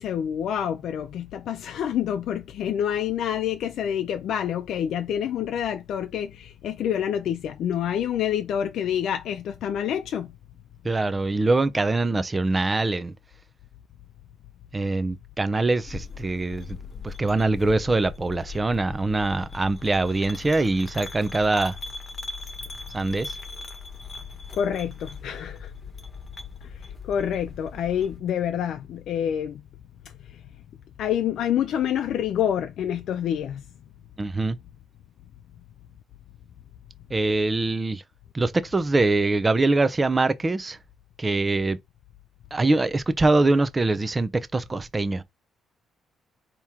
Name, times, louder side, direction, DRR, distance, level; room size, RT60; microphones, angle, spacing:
voice 1, 0.0-10.4 24.5-25.7 26.6-29.6 30.2-30.4 31.0-33.6, left 9 dB, 75° left, 0.5 m, -27 dB
voice 2, 10.8-13.1 14.7-16.8 17.0-21.8 22.9-23.3 34.2-34.6 37.1-38.0 38.3-40.8 41.2-41.8 42.5-45.2, right 2 dB, 25° right, 0.6 m, -23 dB
sound 1, 15.9-28.2, left 4 dB, 40° left, 1.3 m, -39 dB
4.3 x 2.9 x 3.6 m
cardioid pair, 90°, 0 cm